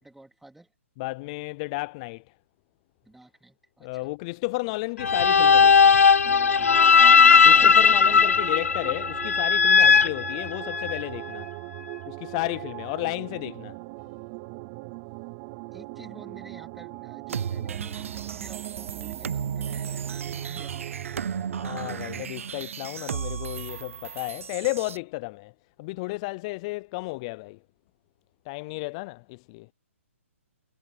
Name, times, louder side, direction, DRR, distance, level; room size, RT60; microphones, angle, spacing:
voice 1, 0.0-0.7 3.0-4.1 7.1-7.7 15.7-20.9, right 2 dB, ahead, 2.9 m, -51 dB
voice 2, 1.0-2.3 3.8-6.0 7.5-11.5 12.1-13.8 21.6-25.5 25.8-27.6 28.5-29.7, left 24 dB, 25° left, 0.4 m, -33 dB
sound 1, 5.0-11.0, left 6 dB, 85° left, 0.5 m, -17 dB
sound 2, 6.2-22.2, right 28 dB, 25° right, 0.5 m, -40 dB
sound 3, 17.3-25.0, right 7 dB, 70° right, 0.6 m, -34 dB
hypercardioid pair, 150°, 8 cm